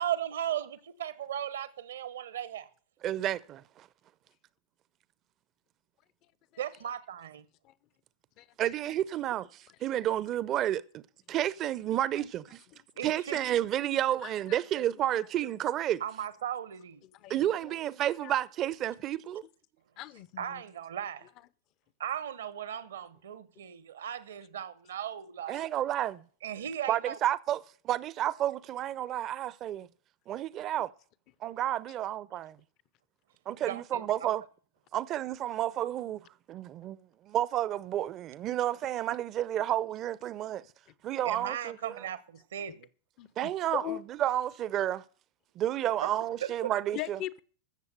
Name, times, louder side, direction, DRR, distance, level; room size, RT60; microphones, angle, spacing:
voice 1, 0.0-2.7 6.6-7.5 13.0-13.4 16.0-17.0 20.4-21.3 22.0-25.6 26.4-27.2 33.7-34.3 41.2-42.9 46.4-46.7, right 10 dB, 65° right, 0.9 m, -37 dB
voice 2, 3.0-3.9 8.6-11.0 11.3-12.6 13.0-16.0 17.3-19.4 25.5-26.2 26.9-27.6 27.8-29.9 30.3-30.9 31.4-32.6 33.5-34.4 34.9-40.6 41.0-42.0 43.4-45.0 45.6-47.2, right 12 dB, 35° right, 0.6 m, -31 dB
voice 3, 8.4-8.7 12.2-12.3 13.3-13.4 14.2-14.6 17.1-17.7 18.2-18.3 20.0-20.6 43.2-44.0 45.9-46.0 46.9-47.4, left 13 dB, 40° left, 0.7 m, -40 dB
15.0 x 7.0 x 6.5 m
figure-of-eight pair, 90°, 0 cm